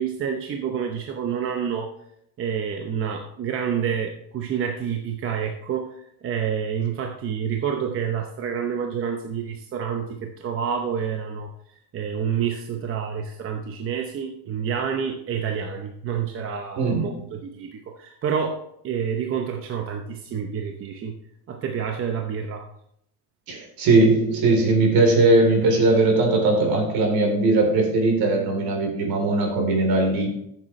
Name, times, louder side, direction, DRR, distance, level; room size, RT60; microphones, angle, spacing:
voice 1, 0.0-1.9 2.4-21.2 21.5-22.6, right 7 dB, 35° right, 3 dB, 0.8 m, -28 dB
voice 2, 16.8-17.1 23.5-30.3, right 2 dB, 60° right, 2 dB, 3.5 m, -19 dB
14.0 x 7.5 x 3.2 m, 0.74 s
cardioid pair, 165°, 40 cm